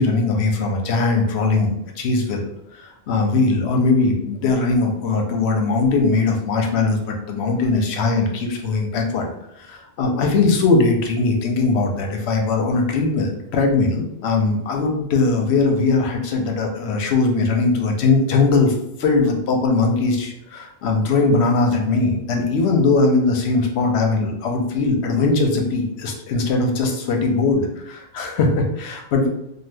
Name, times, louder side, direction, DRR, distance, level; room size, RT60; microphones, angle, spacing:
voice 1, 0.0-2.5 2.7-9.3 9.6-18.7 19.0-29.3, left 3 dB, 75° left, 2 dB, 0.9 m, -20 dB
2.7 x 2.3 x 3.3 m, 0.82 s
omnidirectional pair, 1.1 m